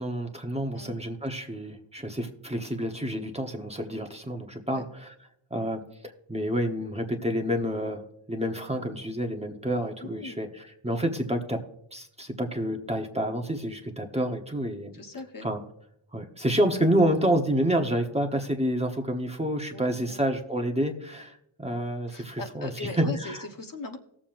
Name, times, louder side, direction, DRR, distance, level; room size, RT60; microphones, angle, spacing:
voice 1, 0.0-5.1 5.5-5.8 6.3-11.6 11.9-15.0 15.4-15.6 16.1-23.4, equal, 15° right, 2 dB, 1.0 m, -28 dB
voice 2, 10.0-10.4 14.9-15.5 19.7-20.2 22.1-24.0, left 3 dB, 40° left, 4 dB, 1.2 m, -39 dB
18.5 x 7.3 x 2.5 m, 0.77 s
wide cardioid pair, 105°, 49 cm